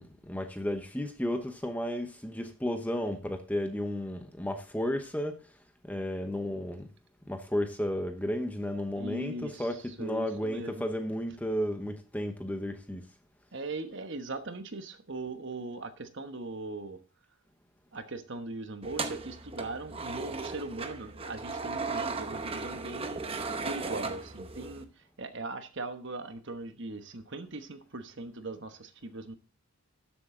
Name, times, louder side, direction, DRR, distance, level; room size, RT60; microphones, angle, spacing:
voice 1, 0.0-5.4 5.8-6.9 7.3-13.1, left 1 dB, 5° left, 0.9 m, -33 dB
voice 2, 8.9-10.8 13.5-17.0 17.9-29.3, right 2 dB, 55° right, 1.2 m, -40 dB
sound 1, 18.8-24.8, right 3 dB, 25° right, 0.8 m, -36 dB
13.0 x 7.7 x 3.8 m
head